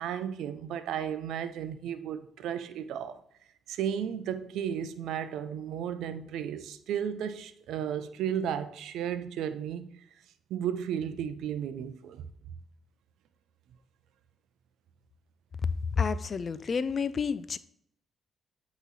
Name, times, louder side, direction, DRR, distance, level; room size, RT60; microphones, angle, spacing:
voice 1, 0.0-3.2 3.7-9.9 10.5-12.2, right 9 dB, 80° right, 0.5 m, -34 dB
voice 2, 15.9-17.6, left 5 dB, 45° left, 0.4 m, -29 dB
8.1 x 3.0 x 4.0 m
cardioid pair, 75°, 0 cm